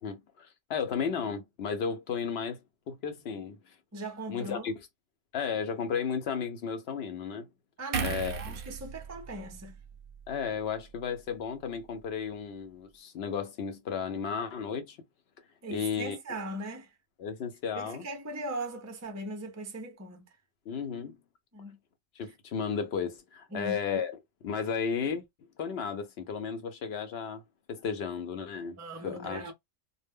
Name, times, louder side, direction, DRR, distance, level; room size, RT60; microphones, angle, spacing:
voice 1, 0.0-3.8 4.3-4.9 5.3-7.5 8.0-8.4 10.3-15.0 15.7-16.2 17.2-18.0 20.7-21.2 22.2-24.2 24.4-25.3 25.6-29.5, left 6 dB, 65° left, 0.8 m, -34 dB
voice 2, 3.9-4.7 7.8-9.8 15.6-16.9 17.7-20.3 21.5-21.8 23.5-23.8 28.8-29.5, right 1 dB, 25° right, 0.3 m, -39 dB
sound 1, 7.9-11.3 11.6-11.8, right 6 dB, 60° right, 0.7 m, -38 dB
2.1 x 2.0 x 3.3 m
omnidirectional pair, 1.2 m